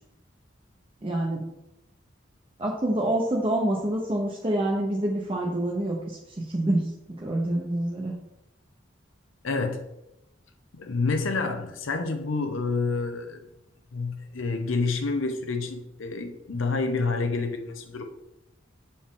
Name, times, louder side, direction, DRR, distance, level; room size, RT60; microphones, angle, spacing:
voice 1, 1.0-1.4 2.6-8.1, right 1 dB, 25° right, 0.7 m, -27 dB
voice 2, 9.4-9.8 10.7-13.4 13.9-18.1, left 3 dB, 80° left, 0.7 m, -28 dB
7.3 x 4.2 x 3.7 m
head